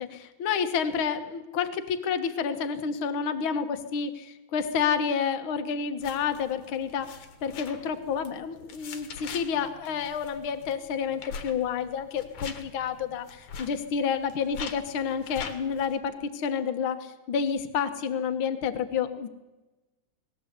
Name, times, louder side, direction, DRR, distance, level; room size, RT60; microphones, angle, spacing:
voice 1, 0.0-19.3, left 6 dB, 50° left, 8 dB, 1.8 m, -29 dB
sound 1, 6.0-16.0, left 6 dB, 75° left, 3.0 m, -43 dB
20.0 x 16.5 x 8.2 m, 1.1 s
omnidirectional pair, 3.4 m